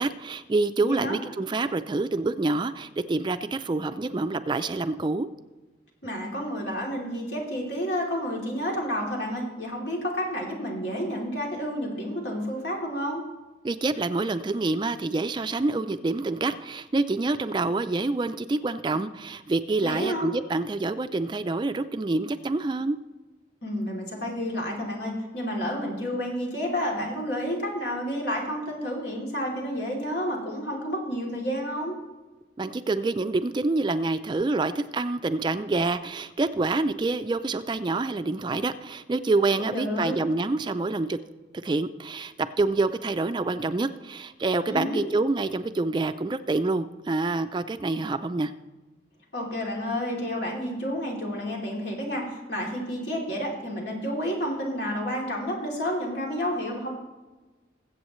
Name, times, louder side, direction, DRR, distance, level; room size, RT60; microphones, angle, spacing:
voice 1, 0.0-5.3 13.6-23.0 32.6-41.2 41.6-48.5, right 3 dB, 25° right, 11 dB, 0.3 m, -27 dB
voice 2, 6.0-13.2 19.8-20.3 23.6-32.0 39.6-40.2 44.7-45.0 49.3-56.9, equal, 80° left, -1 dB, 2.9 m, -30 dB
21.0 x 8.0 x 3.1 m, 1.2 s
head